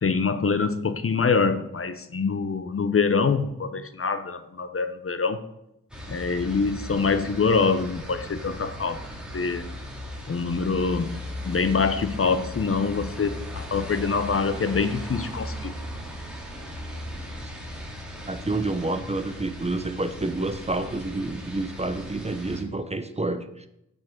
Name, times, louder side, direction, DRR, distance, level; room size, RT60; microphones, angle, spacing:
voice 1, 0.0-5.4 6.1-9.0 9.3-9.7 10.3-11.1 11.4-15.7, left 5 dB, 45° left, 11 dB, 0.7 m, -25 dB
sound 1, 5.9-22.6, left 1 dB, 5° right, 2.4 m, -37 dB
voice 2, 18.3-23.7, right 2 dB, 20° right, 9 dB, 0.6 m, -29 dB
8.8 x 5.2 x 3.8 m, 0.84 s
cardioid pair, 45°, 32 cm